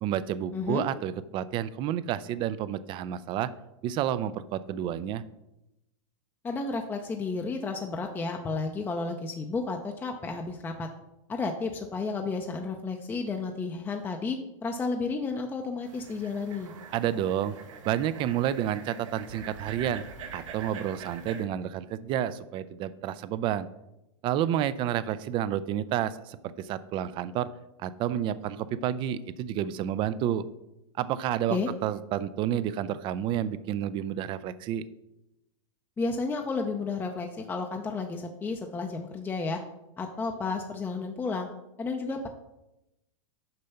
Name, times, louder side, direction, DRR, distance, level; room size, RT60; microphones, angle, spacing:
voice 1, 0.0-3.5 3.8-5.2 16.9-17.6 17.8-20.0 20.3-23.7 24.2-27.5 27.8-30.4 31.0-34.8, right 10 dB, 30° right, 15 dB, 0.4 m, -30 dB
voice 2, 0.5-0.8 6.4-10.9 11.3-16.7 31.5-31.7 36.0-39.6 40.0-41.5 41.8-42.3, left 4 dB, 15° left, 3 dB, 0.6 m, -32 dB
sound 1, 15.8-21.4, right 5 dB, 80° right, 1.5 m, -43 dB
6.7 x 5.2 x 5.7 m, 0.91 s
hypercardioid pair, 135°, 16 cm